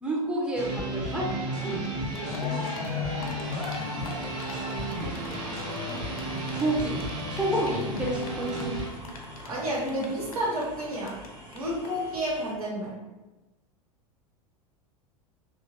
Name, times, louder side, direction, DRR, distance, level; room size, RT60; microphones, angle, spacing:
voice 1, 0.0-1.3 1.6-1.8 2.1-3.3 4.7-6.0 6.5-7.0 7.3-8.9, right 1 dB, 5° right, -3 dB, 0.6 m, -31 dB
sound 1, 0.6-8.9, equal, 40° right, 1.1 m, -33 dB
Cheering, 1.9-2.0 2.1-11.3 11.5-11.6 11.8-11.9, left 4 dB, 75° left, 0.5 m, -41 dB
sound 2, 3.4-12.5, right 1 dB, 60° right, 1.0 m, -45 dB
voice 2, 9.5-11.2 11.5-12.9, equal, 80° right, -5 dB, 1.1 m, -30 dB
3.0 x 2.3 x 2.9 m, 1.1 s
figure-of-eight pair, 85°, 18 cm